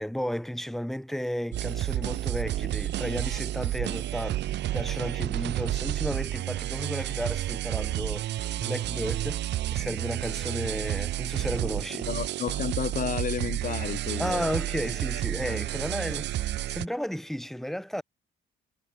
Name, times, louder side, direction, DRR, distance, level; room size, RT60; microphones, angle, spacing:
voice 1, 0.0-8.3 8.6-9.4 9.7-12.1 14.2-18.0, equal, ahead, 1.1 m, -33 dB
sound 1, 1.5-16.9, right 14 dB, 65° right, 0.4 m, -31 dB
voice 2, 12.1-14.6, left 8 dB, 45° left, 0.7 m, -32 dB
cardioid pair, 90°, 20 cm